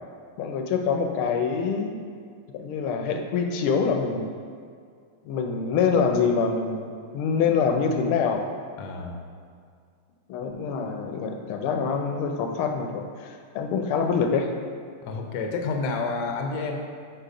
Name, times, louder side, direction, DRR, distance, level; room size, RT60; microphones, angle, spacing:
voice 1, 0.4-2.0 2.5-4.4 5.2-8.5 10.3-14.5, left 5 dB, 85° left, 4 dB, 1.5 m, -25 dB
voice 2, 8.8-9.2 15.0-16.8, left 4 dB, 70° left, 3 dB, 1.0 m, -29 dB
4.7 x 4.7 x 5.0 m, 2.2 s
omnidirectional pair, 2.3 m